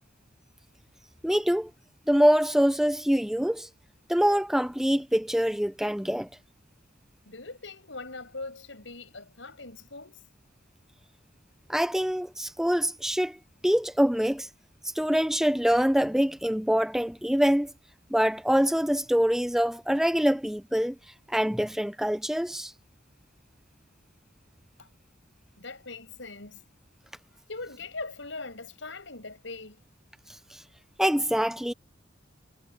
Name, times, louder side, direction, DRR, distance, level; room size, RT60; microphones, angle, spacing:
voice 1, 1.2-1.7 2.1-3.7 4.1-6.3 11.7-14.5 14.8-17.7 18.1-21.0 21.3-22.7 30.3-30.6 31.0-31.7, equal, ahead, 0.4 m, -25 dB
voice 2, 7.2-10.3 24.8-24.9 25.6-26.6 27.5-29.8, left 3 dB, 80° left, 6.3 m, -41 dB
head